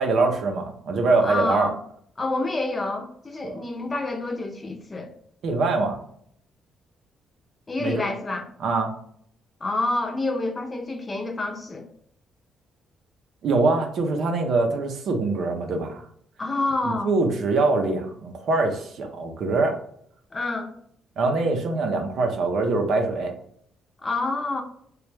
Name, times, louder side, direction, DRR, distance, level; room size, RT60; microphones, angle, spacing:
voice 1, 0.0-1.7 3.4-3.6 5.4-6.0 7.8-8.0 8.6-8.9 13.4-16.0 16.9-19.8 21.2-23.3, right 3 dB, 70° right, 4 dB, 0.6 m, -23 dB
voice 2, 1.2-1.8 2.2-5.1 7.7-8.5 9.6-11.9 16.4-17.1 20.3-20.7 24.0-24.6, left 2 dB, 25° left, 3 dB, 0.6 m, -28 dB
3.1 x 2.3 x 3.2 m, 0.65 s
cardioid pair, 90°, 0 cm